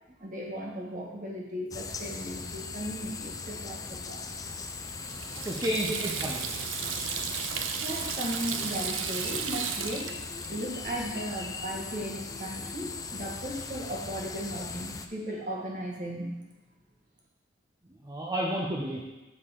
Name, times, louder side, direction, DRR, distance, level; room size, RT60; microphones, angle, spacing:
voice 1, 0.2-4.2 7.8-10.1 10.5-16.3, equal, 40° right, -2 dB, 1.5 m, -36 dB
sound 1, 1.7-15.1, left 4 dB, 20° left, 0.3 m, -39 dB
Water tap faucet / Sink (filling or washing), 4.3-11.1, right 8 dB, 70° right, 0.5 m, -35 dB
voice 2, 5.1-6.5 17.8-19.0, equal, 20° right, -3 dB, 0.7 m, -32 dB
6.7 x 6.4 x 3.7 m, 1.1 s
head